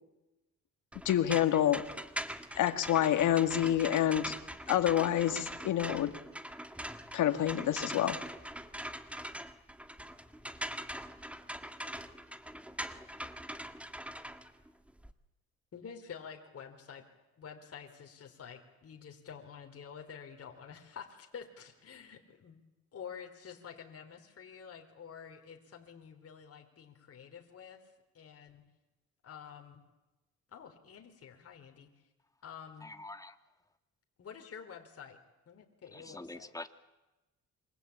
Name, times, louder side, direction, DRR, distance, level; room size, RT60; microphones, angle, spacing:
sound 1, 0.9-15.1, equal, 5° right, 1.9 m, -42 dB
voice 1, 1.1-1.8 2.5-4.3 4.7-6.1 7.1-8.2, left 11 dB, 80° left, 9 dB, 2.1 m, -28 dB
voice 2, 15.7-17.0 17.4-22.6 22.9-27.8 28.1-28.6 29.2-29.8 30.5-31.9 32.4-32.9 34.2-35.2 35.5-36.5, left 7 dB, 50° left, 3 dB, 4.3 m, -49 dB
voice 3, 32.8-33.4 35.9-36.7, left 2 dB, 10° left, 8 dB, 2.1 m, -45 dB
27.0 x 25.0 x 8.8 m, 1.0 s
cardioid pair, 90°, 30 cm